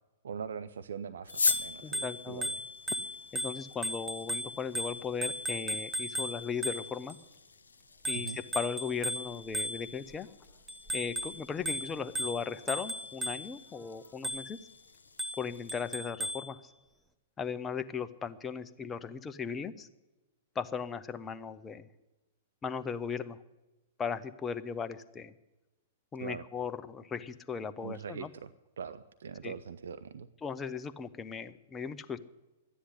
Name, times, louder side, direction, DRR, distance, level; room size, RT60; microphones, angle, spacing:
voice 1, 0.2-2.5 8.1-8.4 26.2-26.4 27.8-28.5 28.8-30.3, right 6 dB, 70° right, 13 dB, 0.6 m, -42 dB
sound 1, 1.2-16.0, left 4 dB, 85° left, 0.8 m, -42 dB
Bicycle bell, 1.3-7.2 8.0-10.1 10.7-13.7 14.2-14.7 15.2-16.5, equal, 10° right, 1.0 m, -37 dB
voice 2, 1.8-2.5 3.3-7.2 8.1-10.3 10.9-14.6 15.4-16.7 17.4-19.9 20.5-21.9 22.6-23.4 24.0-25.3 26.1-28.3 29.4-29.5 30.4-32.2, left 6 dB, 20° left, 10 dB, 0.9 m, -37 dB
13.0 x 10.0 x 9.7 m, 1.1 s
hypercardioid pair, 110°, 0 cm